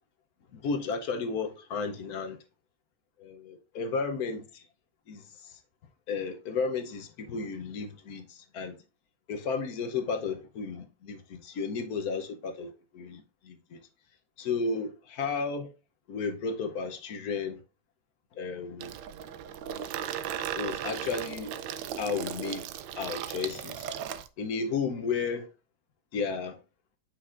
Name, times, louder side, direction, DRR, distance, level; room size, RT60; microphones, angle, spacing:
voice 1, 0.5-2.4 3.2-4.6 5.1-5.6 6.1-8.8 9.3-13.8 14.4-15.7 16.1-17.6 18.3-18.9 20.5-21.5 21.9-22.7 23.0-23.9 24.4-25.5 26.1-26.6, left 5 dB, 60° left, 1.1 m, -33 dB
Water tap faucet / Sink (filling or washing), 18.8-24.3, right 10 dB, 75° right, 1.2 m, -36 dB
8.0 x 5.9 x 2.5 m
omnidirectional pair, 2.1 m